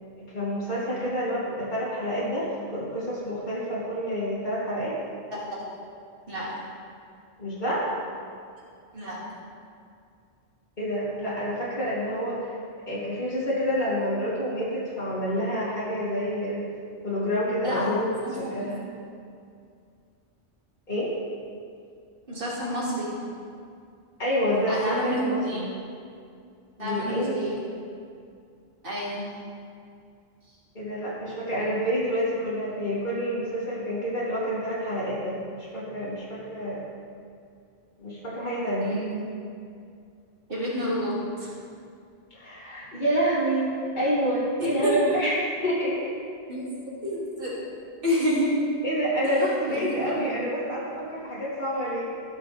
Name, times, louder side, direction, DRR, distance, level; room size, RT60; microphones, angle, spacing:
voice 1, 0.2-4.9 7.4-7.9 10.8-12.5 12.9-16.6 17.0-18.1 18.4-18.8 20.9-21.1 24.2-25.7 26.8-27.4 30.7-36.8 38.0-38.9 42.3-43.7 43.9-46.1 48.8-52.1, equal, 45° left, -10 dB, 2.8 m, -28 dB
voice 2, 17.6-18.7 22.3-23.1 24.7-25.6 26.8-27.6 28.8-29.4 38.8-39.2 40.5-41.5 44.6-45.2 46.5-47.5 48.0-48.7 49.7-50.3, equal, 55° right, -7 dB, 2.7 m, -29 dB
18.5 x 6.4 x 3.4 m, 2.3 s
omnidirectional pair, 1.1 m